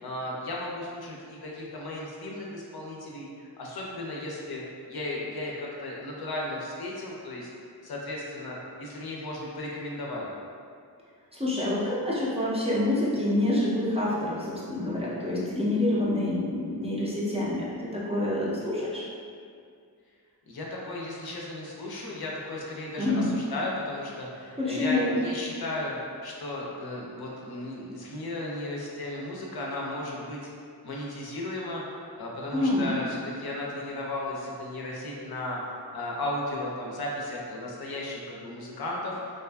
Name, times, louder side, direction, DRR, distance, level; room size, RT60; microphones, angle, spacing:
voice 1, 0.0-3.3 3.6-4.6 4.9-7.5 7.8-10.3 20.5-30.4 30.8-39.2, left 1 dB, 65° left, -3 dB, 0.5 m, -35 dB
voice 2, 11.3-19.0 23.0-23.3 24.6-25.1 32.5-33.0, left 1 dB, 15° right, -8 dB, 0.4 m, -27 dB
2.6 x 2.3 x 2.2 m, 2.3 s
wide cardioid pair, 90°, 41 cm